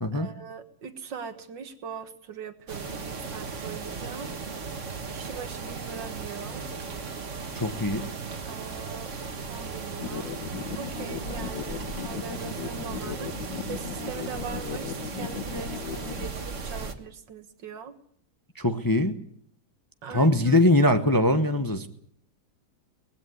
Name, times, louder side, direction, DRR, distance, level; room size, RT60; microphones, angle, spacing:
voice 1, 0.1-4.3 5.1-6.7 8.4-9.1 9.5-10.4 10.8-17.9 20.0-20.6, right 6 dB, 80° right, 8 dB, 2.2 m, -41 dB
sound 1, 2.7-16.9, right 4 dB, 45° right, 1.8 m, -36 dB
voice 2, 7.5-8.0 18.6-19.1 20.1-21.9, left 1 dB, 15° left, 7 dB, 0.8 m, -22 dB
sound 2, 10.0-16.3, left 7 dB, 85° left, 1.9 m, -37 dB
19.5 x 16.0 x 9.6 m, 0.66 s
omnidirectional pair, 1.9 m